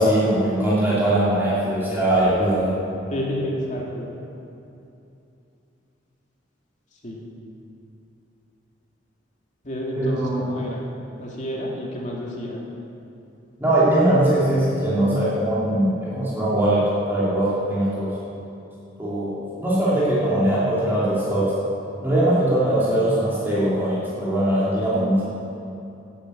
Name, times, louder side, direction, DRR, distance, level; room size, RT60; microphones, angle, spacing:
voice 1, 0.0-2.7 9.9-10.5 13.6-18.1 19.0-21.6 22.0-25.2, right 1 dB, 10° right, -9 dB, 2.8 m, -21 dB
voice 2, 3.1-4.1 7.0-7.2 9.6-10.9 11.2-12.7, equal, 40° left, -2 dB, 2.5 m, -30 dB
11.5 x 8.9 x 8.5 m, 2.8 s
head